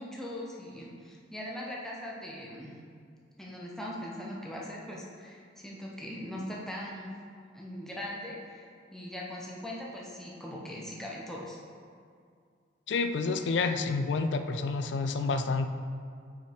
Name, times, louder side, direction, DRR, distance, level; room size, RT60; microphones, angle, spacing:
voice 1, 0.0-2.8 3.4-7.1 7.5-11.6, left 1 dB, 5° left, -4 dB, 0.7 m, -40 dB
voice 2, 12.9-15.7, left 4 dB, 70° left, 8 dB, 0.4 m, -29 dB
5.5 x 5.1 x 4.3 m, 2.2 s
head